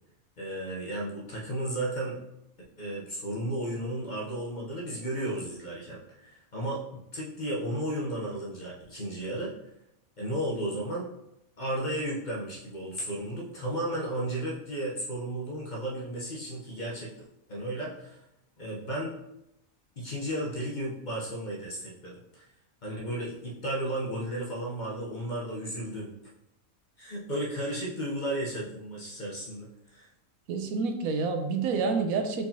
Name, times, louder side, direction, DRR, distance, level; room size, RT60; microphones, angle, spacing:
voice 1, 0.4-2.2 2.8-6.8 7.1-9.5 10.2-11.1 11.6-17.1 17.5-18.2 18.6-19.1 20.0-22.5 22.8-26.1 27.0-30.1, right 1 dB, 40° left, -5 dB, 0.8 m, -34 dB
voice 2, 30.5-32.5, right 4 dB, 85° right, 5 dB, 1.1 m, -28 dB
4.6 x 3.8 x 2.8 m, 0.84 s
omnidirectional pair, 1.5 m